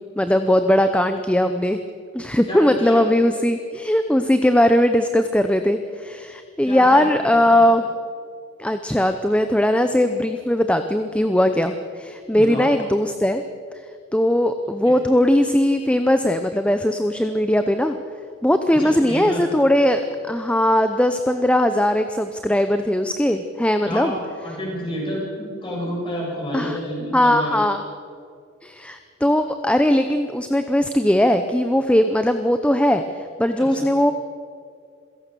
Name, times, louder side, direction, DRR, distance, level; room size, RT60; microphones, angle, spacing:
voice 1, 0.0-1.8 2.1-7.8 8.6-13.4 14.1-18.0 18.4-24.1 26.5-26.8 27.1-27.8 28.6-34.1, left 1 dB, 5° left, 8 dB, 0.7 m, -19 dB
voice 2, 2.5-3.0 6.6-7.6 12.3-12.7 14.8-14.9 18.7-19.4 23.8-27.6 33.6-33.8, equal, 25° left, -4 dB, 7.9 m, -30 dB
26.5 x 17.0 x 6.9 m, 2.3 s
head